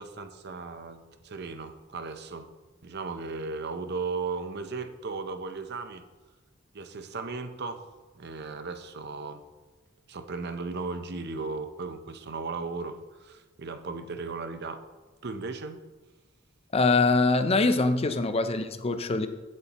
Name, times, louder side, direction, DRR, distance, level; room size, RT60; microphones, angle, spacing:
voice 1, 0.0-2.5 2.8-6.0 6.7-7.8 8.1-9.4 10.1-14.8 15.2-15.8, right 4 dB, 55° right, 9 dB, 0.7 m, -36 dB
voice 2, 16.7-19.3, left 3 dB, 30° left, 9 dB, 0.5 m, -23 dB
15.0 x 8.0 x 3.0 m, 1.2 s
head